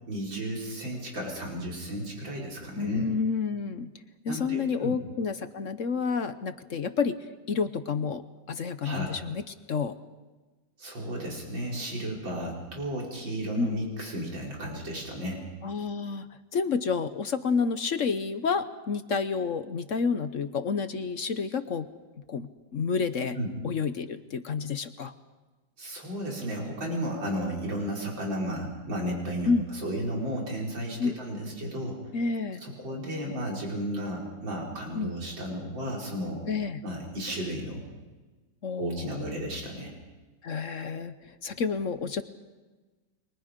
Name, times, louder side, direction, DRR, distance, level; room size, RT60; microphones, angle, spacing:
voice 1, 0.1-3.1 4.3-5.0 8.8-9.1 10.8-15.4 23.4-23.5 25.8-32.0 32.6-36.4 36.8-37.8 38.8-39.9, right 1 dB, 80° right, -2 dB, 5.7 m, -33 dB
voice 2, 2.8-3.9 4.2-7.2 7.5-9.9 13.6-13.8 15.6-16.3 16.5-21.9 22.3-23.4 23.6-25.1 29.5-29.7 31.0-31.2 32.1-32.6 34.9-35.1 36.5-36.8 38.6-39.2 40.4-41.1 41.4-42.2, left 5 dB, 50° left, 10 dB, 1.1 m, -29 dB
30.0 x 23.5 x 5.2 m, 1.3 s
omnidirectional pair, 2.0 m